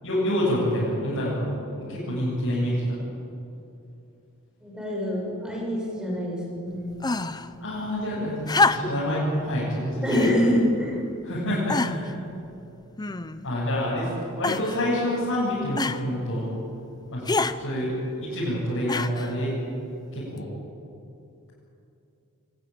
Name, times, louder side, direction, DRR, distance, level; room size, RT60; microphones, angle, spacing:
voice 1, 0.0-3.0 7.6-10.0 11.2-12.1 13.4-14.1 14.3-16.5 17.1-17.2 17.6-19.5 20.1-20.5, equal, 60° left, -9 dB, 8.0 m, -27 dB
voice 2, 4.6-7.1 10.0-11.0, equal, 5° right, -2 dB, 6.6 m, -26 dB
sound 1, 7.0-7.5 8.5-9.1 10.1-10.4 11.1-11.2 11.7-12.1 13.0-13.5 14.4-14.8 15.8-16.0 17.3-17.6 18.9-19.3 20.4-20.5, left 3 dB, 20° left, 0.7 m, -26 dB
24.5 x 19.5 x 8.8 m, 2.7 s
head